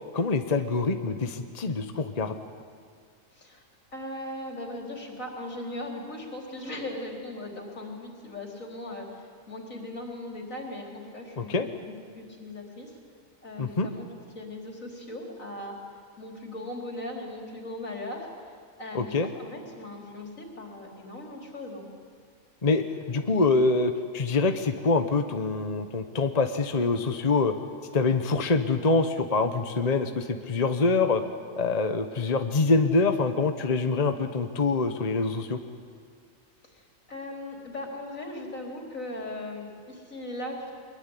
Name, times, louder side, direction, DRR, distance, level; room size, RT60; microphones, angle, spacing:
voice 1, 0.1-2.4 11.4-11.7 13.6-13.9 18.9-19.3 22.6-27.5 27.9-31.2 31.6-35.6, left 3 dB, 30° left, 7 dB, 1.1 m, -25 dB
voice 2, 3.3-3.7 3.9-13.0 13.4-14.1 14.3-15.7 16.2-21.9 36.6-40.7, left 1 dB, 75° left, 1 dB, 4.6 m, -38 dB
23.5 x 22.5 x 10.0 m, 2.1 s
omnidirectional pair, 1.4 m